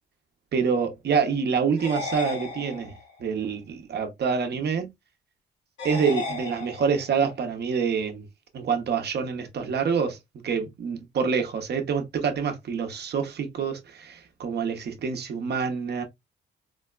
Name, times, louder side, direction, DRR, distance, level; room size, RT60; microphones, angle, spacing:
voice 1, 0.5-2.9 3.2-4.9 5.8-8.3 8.5-10.2 10.4-16.0, right 6 dB, 55° right, 0.9 m, -26 dB
sound 1, 1.8-3.2 5.8-7.2, left 4 dB, 80° left, 2.1 m, -34 dB
4.0 x 2.1 x 2.4 m
cardioid pair, 90°, 20 cm